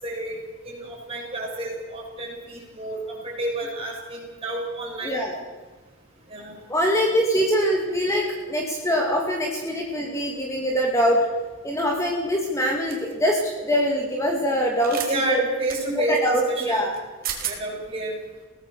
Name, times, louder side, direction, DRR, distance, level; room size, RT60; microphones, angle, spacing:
voice 1, 0.0-5.2 6.3-6.6 15.0-16.9 17.4-18.2, right 2 dB, 25° right, -2 dB, 7.0 m, -30 dB
voice 2, 5.0-5.4 6.7-11.2 11.6-15.0 15.3-15.4 15.9-16.9, equal, 15° left, 0 dB, 2.4 m, -23 dB
sound 1, 12.9-13.1 14.8-15.1 15.7-15.8 16.9-17.0 17.2-17.6, right 9 dB, 40° right, 3.4 m, -31 dB
23.0 x 18.5 x 6.9 m, 1.3 s
head